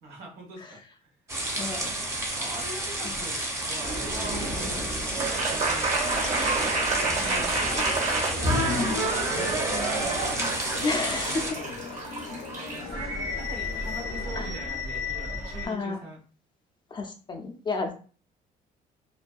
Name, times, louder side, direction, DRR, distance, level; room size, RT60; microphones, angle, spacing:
voice 1, 0.0-1.1 1.5-2.1 2.3-3.4 3.6-5.9 7.1-8.0 8.6-10.4 10.8-11.5 12.0-12.3 12.5-16.2, right 1 dB, 75° right, -1 dB, 1.0 m, -42 dB
sound 1, 1.3-11.5, right 1 dB, 15° right, 0.7 m, -32 dB
voice 2, 1.6-1.9 3.0-3.2 8.7-9.0 10.8-11.4 14.3-14.7 15.6-16.0 16.9-17.9, left 3 dB, 25° left, 3 dB, 0.4 m, -31 dB
sound 2, 3.8-15.7, right 2 dB, 45° right, 0.9 m, -29 dB
sound 3, 6.0-14.5, left 5 dB, 85° left, 0.5 m, -41 dB
2.5 x 2.2 x 2.3 m, 0.38 s
cardioid pair, 110°, 17 cm